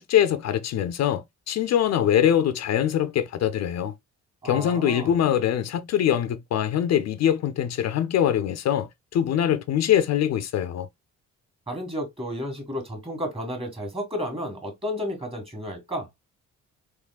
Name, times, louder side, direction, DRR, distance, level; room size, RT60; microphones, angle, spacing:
voice 1, 0.0-3.9 4.4-10.9, left 10 dB, 60° left, 0.5 m, -23 dB
voice 2, 4.4-5.1 11.7-16.1, equal, 20° right, 1.8 m, -32 dB
3.6 x 3.2 x 2.3 m
cardioid pair, 90°, 30 cm